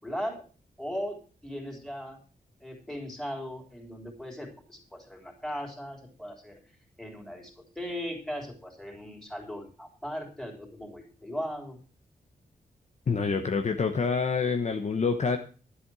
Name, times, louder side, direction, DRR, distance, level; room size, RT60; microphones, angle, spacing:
voice 1, 0.0-0.4 0.8-2.2 2.6-6.6 7.0-11.8, equal, ahead, 1 dB, 3.7 m, -38 dB
voice 2, 13.1-15.4, left 5 dB, 45° left, 5 dB, 1.0 m, -27 dB
12.0 x 7.9 x 6.1 m, 0.37 s
wide cardioid pair, 155°, 16 cm